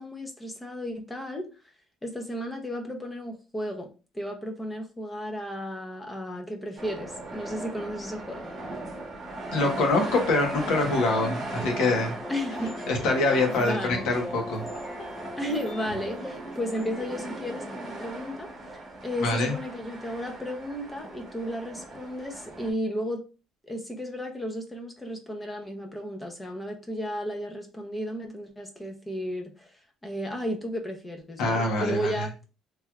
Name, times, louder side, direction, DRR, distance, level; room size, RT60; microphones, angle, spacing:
voice 1, 0.0-1.5 2.0-3.9 4.1-8.5 12.3-12.8 13.6-14.1 15.4-18.5 19.0-23.2 23.6-29.7 30.0-32.5, equal, 10° left, 3 dB, 0.6 m, -34 dB
sound 1, 6.8-22.7, right 2 dB, 30° right, 1.0 m, -38 dB
voice 2, 9.5-12.1 12.9-14.6 19.2-19.5 31.4-32.1, left 2 dB, 80° left, 2 dB, 1.1 m, -25 dB
sound 2, 12.2-17.2, left 2 dB, 40° left, 1.1 m, -40 dB
3.2 x 2.9 x 2.3 m, 0.32 s
cardioid pair, 155°, 0 cm